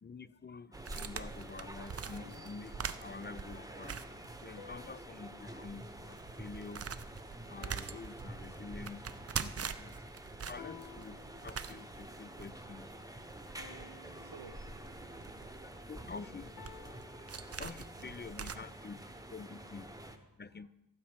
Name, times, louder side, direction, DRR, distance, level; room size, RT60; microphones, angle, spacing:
voice 1, 0.0-4.0 4.4-6.9 7.5-10.0 10.4-11.2 11.4-12.9 15.6-16.5 17.6-20.7, left 4 dB, 25° left, 16 dB, 0.4 m, -48 dB
sound 1, 0.7-20.2, right 1 dB, 10° right, 1.0 m, -48 dB
sound 2, 0.7-4.9 5.2-5.3 5.8-18.6, right 6 dB, 35° right, 0.5 m, -44 dB
sound 3, 2.2-3.4 4.6-7.0 7.6-9.1 10.6-12.0 13.6-15.4 16.6-18.2, left 6 dB, 60° left, 1.4 m, -57 dB
voice 2, 14.0-15.9 18.0-18.6 20.0-20.7, right 6 dB, 90° right, 5 dB, 0.8 m, -59 dB
14.5 x 7.1 x 5.1 m, 0.92 s
cardioid pair, 65°, 42 cm